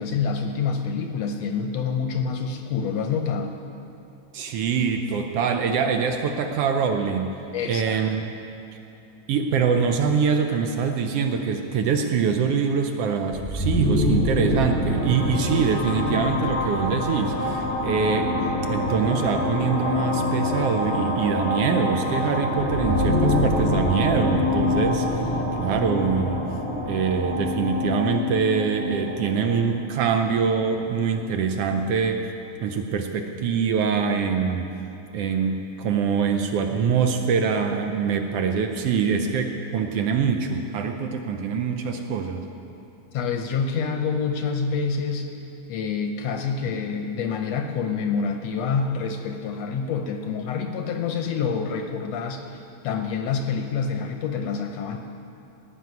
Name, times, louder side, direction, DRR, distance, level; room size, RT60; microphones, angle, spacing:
voice 1, 0.0-3.6 7.5-8.0 43.1-45.3 45.7-55.0, left 5 dB, 75° left, 5 dB, 1.6 m, -27 dB
voice 2, 4.3-7.3 7.7-8.2 9.3-18.3 18.7-25.3 25.6-26.5 26.9-32.2 32.6-34.7 35.1-42.5, right 6 dB, 80° right, 5 dB, 1.4 m, -24 dB
sound 1, 13.3-31.0, left 2 dB, 10° left, 1.2 m, -25 dB
16.5 x 6.3 x 9.3 m, 2.7 s
omnidirectional pair, 3.5 m